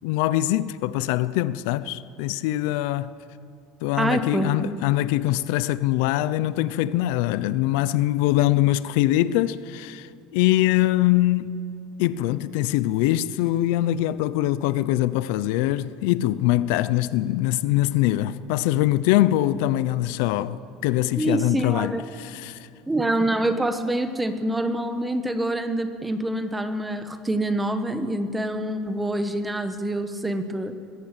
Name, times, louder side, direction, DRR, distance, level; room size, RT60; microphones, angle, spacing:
voice 1, 0.0-3.1 3.8-11.6 12.0-22.6, left 15 dB, 75° left, 0.6 m, -23 dB
voice 2, 4.0-4.8 21.2-22.0 22.9-30.7, right 1 dB, 10° right, 1.2 m, -26 dB
21.5 x 15.5 x 8.2 m
cardioid pair, 150°, 0 cm